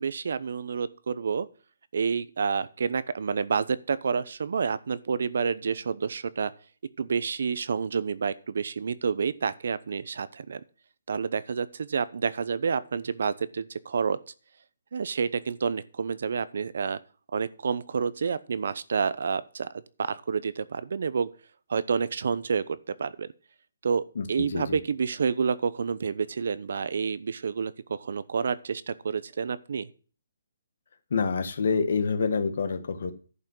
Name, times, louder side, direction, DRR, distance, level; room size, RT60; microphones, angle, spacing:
voice 1, 0.0-1.5 1.9-6.5 7.0-10.6 11.1-14.2 14.9-17.0 17.3-19.7 20.0-21.3 21.7-23.3 23.8-29.9, right 6 dB, 65° right, 16 dB, 0.7 m, -29 dB
voice 2, 24.1-24.8 31.1-33.1, left 5 dB, 60° left, 8 dB, 1.5 m, -27 dB
11.0 x 5.6 x 6.2 m, 0.41 s
hypercardioid pair, 160°, 0 cm